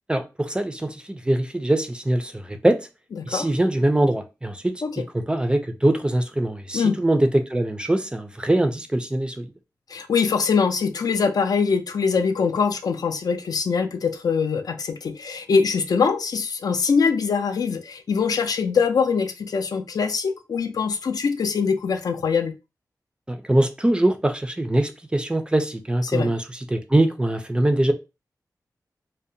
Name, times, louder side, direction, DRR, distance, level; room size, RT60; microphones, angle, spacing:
voice 1, 0.1-2.8 3.2-4.7 5.1-9.5 23.3-27.9, right 1 dB, 15° right, 0.3 m, -22 dB
voice 2, 3.2-3.5 4.8-5.0 6.7-7.0 9.9-22.5 26.1-26.3, left 5 dB, 70° left, 0.3 m, -23 dB
2.7 x 2.0 x 2.6 m
wide cardioid pair, 115°, 7 cm